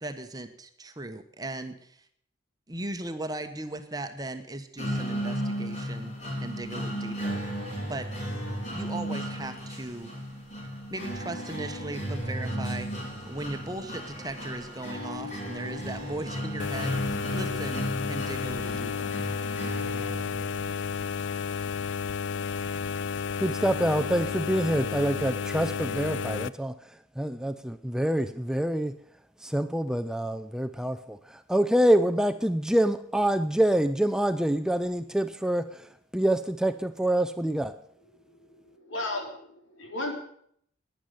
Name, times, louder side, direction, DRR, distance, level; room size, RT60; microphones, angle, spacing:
voice 1, 0.0-2.1 2.7-7.4 7.9-8.1 8.7-10.1 10.9-12.9 13.3-19.1, right 2 dB, 20° right, 8 dB, 1.1 m, -37 dB
sound 1, 4.8-20.7, equal, 40° left, 4.7 m, -34 dB
sound 2, 16.6-26.5, left 6 dB, 65° left, 0.5 m, -32 dB
voice 2, 23.4-29.0 29.4-37.8, right 1 dB, 5° right, 10 dB, 0.5 m, -26 dB
voice 3, 38.3-40.1, left 2 dB, 85° left, 2 dB, 3.9 m, -35 dB
12.0 x 10.5 x 9.2 m, 0.67 s
head